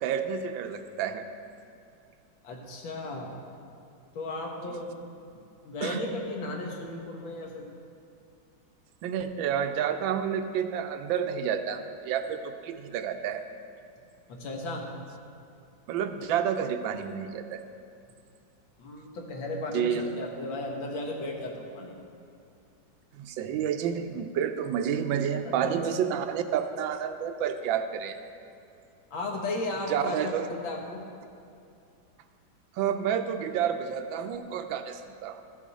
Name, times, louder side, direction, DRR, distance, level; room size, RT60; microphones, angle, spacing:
voice 1, 0.0-1.2 5.8-6.0 9.0-13.4 15.9-17.6 19.7-20.0 23.2-28.2 29.9-30.5 32.8-35.4, right 8 dB, 90° right, 8 dB, 1.4 m, -29 dB
voice 2, 2.4-3.4 4.1-4.9 5.3-7.7 14.3-14.8 18.8-22.0 25.4-25.7 29.1-31.0, left 2 dB, 85° left, 0 dB, 2.0 m, -35 dB
13.5 x 7.3 x 4.1 m, 2.6 s
omnidirectional pair, 2.1 m